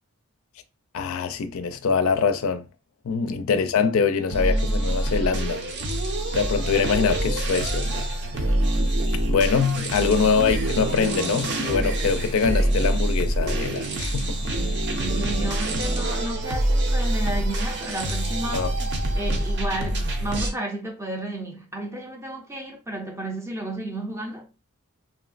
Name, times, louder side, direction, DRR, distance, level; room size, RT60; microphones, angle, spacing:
voice 1, 0.9-2.7 3.0-5.6 6.3-8.1 8.4-8.5 9.3-14.4 18.5-18.7, left 5 dB, 65° left, 0.4 m, -24 dB
sound 1, 4.3-20.5, right 1 dB, 50° right, 0.6 m, -25 dB
voice 2, 10.0-10.3 14.6-18.7 19.1-24.5, right 1 dB, 10° right, 0.5 m, -32 dB
3.0 x 2.6 x 2.4 m
head